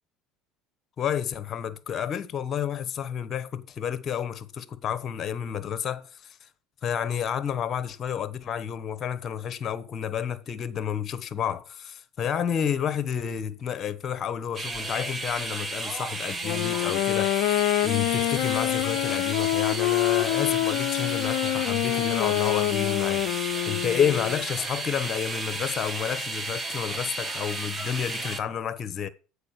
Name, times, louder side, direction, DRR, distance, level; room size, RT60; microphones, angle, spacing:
voice 1, 1.0-6.5 6.8-29.1, left 8 dB, 40° left, 0.9 m, -30 dB
sound 1, 14.6-28.4, right 3 dB, 25° right, 1.2 m, -33 dB
Wind instrument woodwind instrument, 16.3-24.4, left 17 dB, 65° left, 0.4 m, -26 dB
8.4 x 4.8 x 6.7 m
hypercardioid pair, 70°, 0 cm